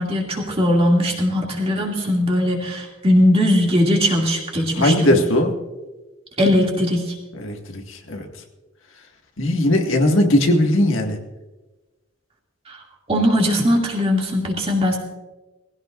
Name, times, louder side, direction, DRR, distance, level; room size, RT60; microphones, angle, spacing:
voice 1, 0.0-5.2 6.4-7.1 12.7-12.8 13.1-15.0, left 1 dB, 30° right, -1 dB, 2.4 m, -19 dB
voice 2, 4.8-5.5 7.4-8.3 9.4-11.2, left 1 dB, 65° left, 2 dB, 1.9 m, -18 dB
19.5 x 16.5 x 2.5 m, 1.1 s
head